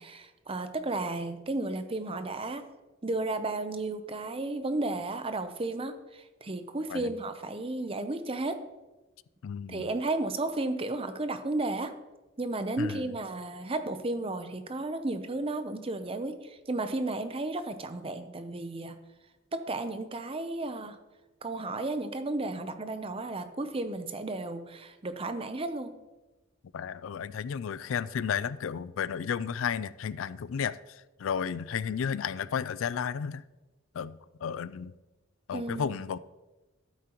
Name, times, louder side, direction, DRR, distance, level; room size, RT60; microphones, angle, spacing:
voice 1, 0.0-2.6 3.0-8.6 9.7-11.9 12.4-19.0 19.5-21.0 21.4-25.9 35.5-35.9, right 2 dB, 30° right, 9 dB, 0.6 m, -33 dB
voice 2, 9.4-9.8 12.8-13.0 26.7-33.4 33.9-34.9 35.5-36.2, left 7 dB, 80° left, 17 dB, 0.4 m, -33 dB
12.5 x 8.5 x 3.0 m, 1.1 s
head